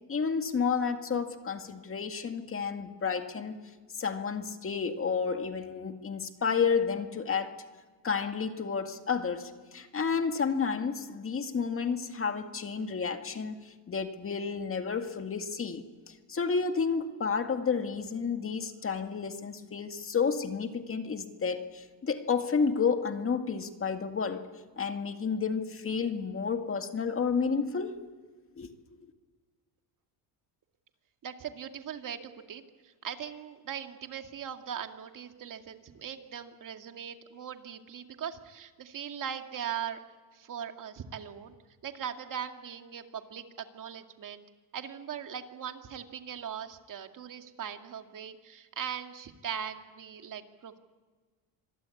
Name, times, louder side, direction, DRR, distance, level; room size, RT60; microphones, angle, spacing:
voice 1, 0.1-3.5 3.9-7.6 8.0-24.5 24.8-28.0 28.6-29.0, left 5 dB, 30° left, 6 dB, 2.1 m, -31 dB
voice 2, 31.2-40.0 40.3-41.5 41.8-44.5 44.7-50.8, right 8 dB, 45° right, 6 dB, 2.3 m, -40 dB
26.0 x 21.5 x 8.5 m, 1.4 s
cardioid pair, 125°, 44 cm